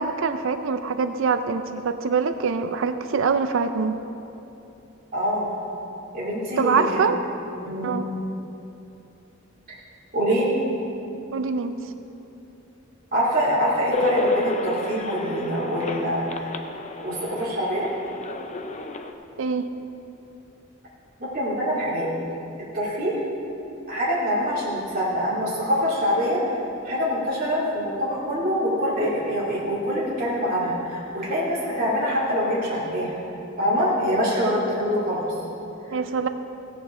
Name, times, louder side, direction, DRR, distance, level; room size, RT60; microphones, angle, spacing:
voice 1, 0.0-4.0 6.6-7.2 7.8-8.1 11.3-11.7 19.4-19.7 35.9-36.3, right 5 dB, 65° right, 9 dB, 0.5 m, -24 dB
voice 2, 5.1-5.5 6.1-7.1 7.6-8.0 10.1-10.5 13.1-16.6 17.0-17.9 21.3-22.1 22.7-23.2 23.9-26.5 26.8-33.2 33.6-35.4 35.9-36.0, equal, 45° right, -8 dB, 2.6 m, -25 dB
sound 1, 13.9-19.1, left 2 dB, 35° left, 0.6 m, -30 dB
16.5 x 9.2 x 3.7 m, 2.9 s
head